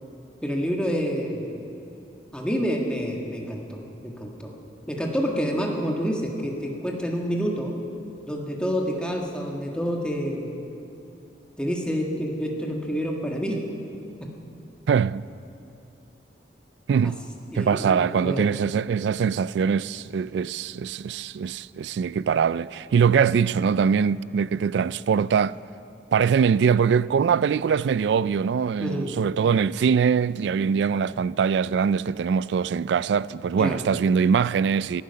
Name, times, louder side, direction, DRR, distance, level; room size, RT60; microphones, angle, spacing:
voice 1, 0.4-1.5 2.3-4.5 4.9-7.7 8.3-10.5 11.6-13.6 14.2-14.3 17.0-17.1 17.5-18.6 28.8-29.2 33.6-33.8, equal, 5° left, 1.5 m, -28 dB
voice 2, 14.9-15.2 16.9-17.2 17.6-25.6 26.1-35.0, right 6 dB, 70° right, 0.3 m, -22 dB
12.0 x 10.0 x 9.6 m
head